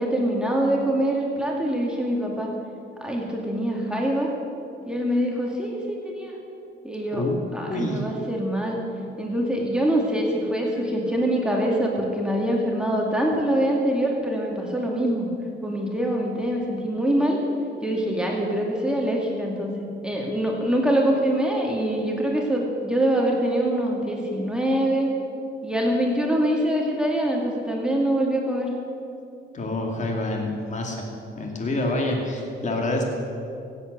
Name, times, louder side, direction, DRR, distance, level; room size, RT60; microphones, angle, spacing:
voice 1, 0.0-2.5 3.0-4.3 4.9-6.3 6.8-7.3 7.5-8.8 9.2-15.3 15.6-17.4 17.8-19.7 20.0-25.1 25.6-28.7, right 1 dB, 5° right, -2 dB, 2.2 m, -24 dB
voice 2, 7.1-7.4 7.7-8.0 29.5-31.1 31.3-33.0, left 2 dB, 40° left, 1 dB, 2.5 m, -27 dB
16.0 x 8.3 x 6.7 m, 2.6 s
cardioid pair, 90°, 20 cm